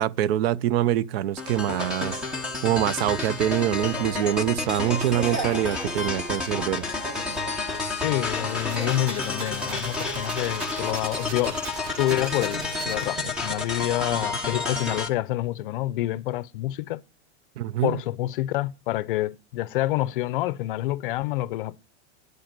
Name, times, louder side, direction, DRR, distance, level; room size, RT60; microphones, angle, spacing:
voice 1, 0.0-2.2 2.6-6.9 17.6-18.0, right 12 dB, 60° right, 0.6 m, -24 dB
sound 1, 1.4-15.1, left 3 dB, 5° right, 0.8 m, -30 dB
sound 2, 3.8-8.9, right 2 dB, 30° right, 1.4 m, -38 dB
voice 2, 8.0-11.6 12.0-17.0 17.8-21.8, left 15 dB, 50° left, 0.6 m, -27 dB
sound 3, 8.4-13.4, right 5 dB, 80° right, 1.9 m, -40 dB
9.7 x 7.9 x 8.8 m
supercardioid pair, 170°, 34 cm